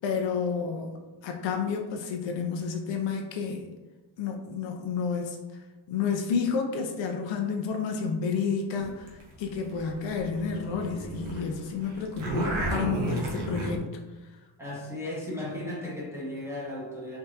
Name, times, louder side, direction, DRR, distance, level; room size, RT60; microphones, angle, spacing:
voice 1, 0.0-1.0 1.2-3.7 4.2-5.4 5.9-9.1 9.4-13.9, left 5 dB, 70° left, 3 dB, 0.6 m, -30 dB
sound 1, 8.8-11.4 11.7-13.8, right 1 dB, 85° right, 1.0 m, -32 dB
voice 2, 14.6-17.2, left 1 dB, 5° right, -6 dB, 0.9 m, -35 dB
3.6 x 3.3 x 2.8 m, 1.1 s
cardioid pair, 160°, 47 cm